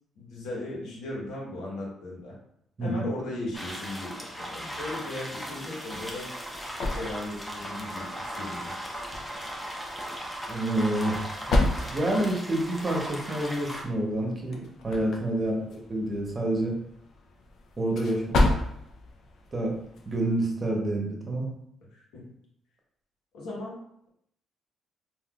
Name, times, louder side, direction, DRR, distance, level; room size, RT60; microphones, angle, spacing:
voice 1, 0.2-2.3 2.8-4.2 4.5-6.3 6.8-8.7 15.3-15.6 21.9-22.2 23.3-23.8, left 2 dB, 90° left, -4 dB, 1.2 m, -37 dB
sound 1, 3.5-13.8, equal, 5° left, 0.7 m, -37 dB
sound 2, 6.0-20.4, left 2 dB, 70° left, 0.6 m, -33 dB
voice 2, 10.5-11.2 11.5-15.6 15.9-16.8 17.8-18.5 19.5-19.8 20.1-21.5, right 1 dB, 35° right, 0 dB, 0.9 m, -28 dB
3.7 x 2.6 x 2.4 m, 0.73 s
cardioid pair, 90°, 0 cm